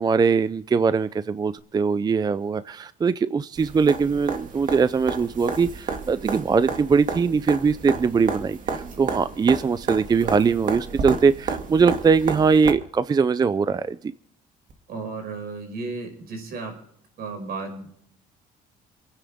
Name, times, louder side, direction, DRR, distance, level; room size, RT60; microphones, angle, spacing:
voice 1, 0.0-14.1, right 5 dB, 25° right, 14 dB, 0.5 m, -21 dB
sound 1, 3.6-12.7 14.7-14.8, right 5 dB, 50° right, 2.3 m, -31 dB
voice 2, 14.9-16.7 17.2-17.9, right 3 dB, 65° right, 4 dB, 5.9 m, -34 dB
27.5 x 9.9 x 3.6 m, 0.66 s
cardioid pair, 110°, 17 cm